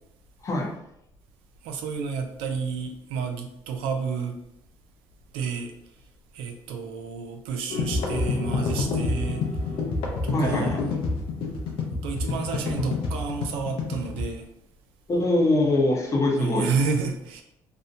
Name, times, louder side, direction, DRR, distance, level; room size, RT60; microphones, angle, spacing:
voice 1, 0.4-0.8 10.3-10.8 15.1-16.7, left 2 dB, 35° left, 0 dB, 0.7 m, -23 dB
voice 2, 1.6-4.4 5.3-5.7 6.3-9.5 10.2-10.8 12.0-14.5 16.4-17.4, right 5 dB, 90° right, 4 dB, 0.4 m, -30 dB
sound 1, 7.7-14.2, left 3 dB, 75° left, 0.6 m, -27 dB
2.6 x 2.1 x 2.6 m, 0.78 s
supercardioid pair, 85°, 9 cm